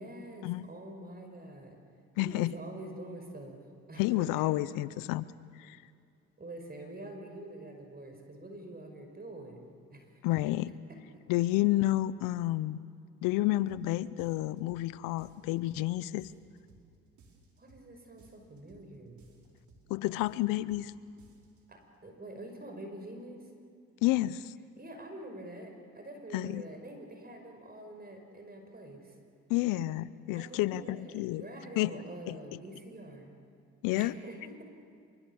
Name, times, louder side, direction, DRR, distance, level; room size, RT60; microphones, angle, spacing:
voice 1, 0.0-1.8 2.2-3.6 3.9-4.4 6.4-10.2 11.1-11.2 17.6-19.2 21.7-23.5 24.8-29.2 30.3-33.4 34.0-34.6, right 1 dB, 30° right, 4 dB, 5.1 m, -46 dB
voice 2, 2.2-2.5 4.0-5.2 5.6-5.8 10.2-10.7 11.3-12.8 13.2-16.3 19.9-20.9 24.0-24.5 26.3-26.6 29.5-31.4 31.8-32.0 32.3-32.4 33.8-34.1, left 16 dB, 85° left, 18 dB, 0.7 m, -30 dB
sound 1, 13.7-13.9 14.2-14.9 15.2-15.9 16.2-16.9 17.2-17.9 18.2-18.9 19.2-19.9 20.2-20.9 21.2-21.6, right 4 dB, 60° right, 4.7 m, -60 dB
26.0 x 23.5 x 7.0 m, 2.2 s
supercardioid pair, 60°, 32 cm